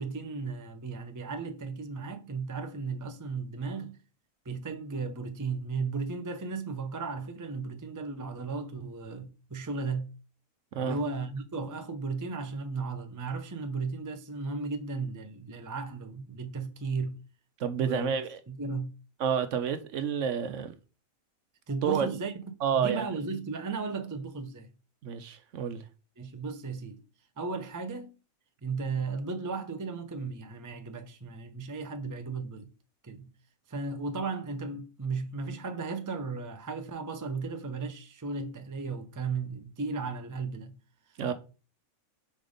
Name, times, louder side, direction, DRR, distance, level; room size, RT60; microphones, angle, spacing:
voice 1, 0.0-4.0 4.4-10.1 10.8-17.2 17.8-18.1 18.5-18.9 21.7-22.4 22.7-24.7 26.2-27.0 27.4-28.1 28.6-32.7 33.0-33.3 33.7-40.7, right 4 dB, 25° right, 0.4 m, -35 dB
voice 2, 17.6-18.4 19.2-20.7 21.8-22.1 22.6-23.0 25.0-25.8 41.2-41.3, right 7 dB, 65° right, 1.0 m, -29 dB
5.2 x 3.9 x 5.0 m
omnidirectional pair, 1.5 m